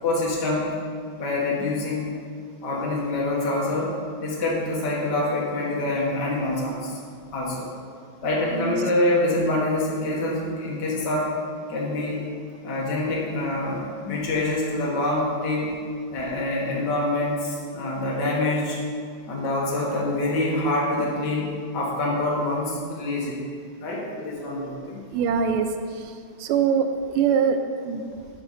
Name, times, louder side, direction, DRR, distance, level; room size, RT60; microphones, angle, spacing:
voice 1, 0.0-0.7 1.2-2.1 2.6-7.0 7.3-7.7 8.2-11.3 11.7-12.2 12.6-15.8 16.1-18.8 19.3-23.4 23.8-25.0, left 2 dB, 55° left, -4 dB, 2.0 m, -26 dB
voice 2, 25.1-25.7 26.4-26.9 27.1-28.0, right 7 dB, 80° right, 7 dB, 1.5 m, -22 dB
11.5 x 4.4 x 4.2 m, 2.1 s
omnidirectional pair, 2.4 m